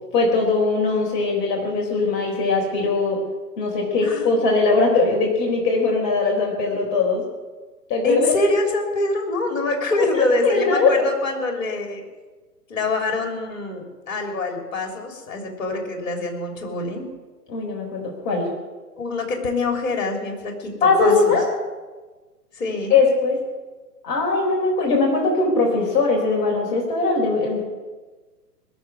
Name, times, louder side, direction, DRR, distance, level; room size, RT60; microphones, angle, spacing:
voice 1, 0.1-3.2 3.6-7.2 7.9-8.3 10.0-10.9 17.5-18.5 20.8-21.4 22.9-23.4 24.0-27.6, left 3 dB, 30° left, 0 dB, 3.9 m, -20 dB
voice 2, 8.0-12.0 12.7-17.1 19.0-21.4 22.5-22.9, left 2 dB, 55° left, 3 dB, 3.7 m, -25 dB
20.0 x 7.1 x 9.6 m, 1.3 s
figure-of-eight pair, 120°, 48 cm